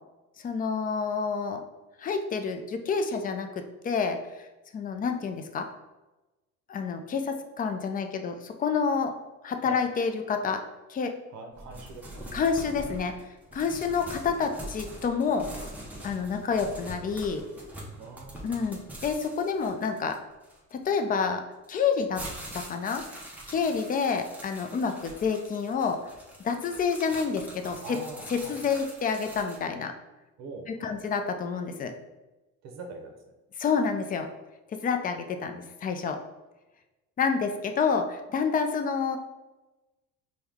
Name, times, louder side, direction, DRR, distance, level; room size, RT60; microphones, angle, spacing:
voice 1, 0.4-1.6 2.0-4.2 4.7-5.7 6.7-9.1 9.4-10.6 10.9-11.1 12.3-13.1 13.5-15.5 16.0-17.4 18.4-20.2 20.7-21.4 21.7-22.2 22.5-23.0 23.5-26.0 26.4-28.0 28.3-29.9 30.7-31.9 33.6-34.3 34.7-36.2 37.2-39.2, left 5 dB, 25° left, 6 dB, 0.4 m, -28 dB
voice 2, 11.3-12.2 18.0-18.7 27.8-28.8 30.4-31.0 32.6-33.2, right 3 dB, 55° right, 4 dB, 0.8 m, -43 dB
sound 1, 11.5-21.0 21.6-29.7, right 1 dB, 5° right, 0.7 m, -44 dB
4.4 x 2.3 x 3.5 m, 1.1 s
supercardioid pair, 105°, 32 cm